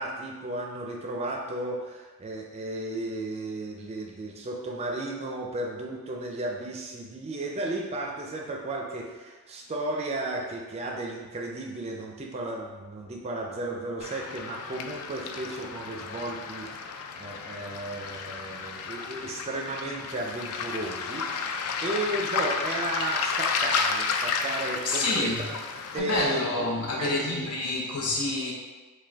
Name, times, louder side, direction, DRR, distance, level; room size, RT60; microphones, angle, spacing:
voice 1, 0.0-16.9 17.2-25.6 25.9-27.5, right 2 dB, 30° right, 0 dB, 0.4 m, -34 dB
Waves surf, 14.0-26.0, left 5 dB, 70° left, 0.3 m, -32 dB
voice 2, 24.8-25.5 25.9-28.5, left 2 dB, 90° left, -3 dB, 0.8 m, -28 dB
4.9 x 2.2 x 3.3 m, 1.3 s
head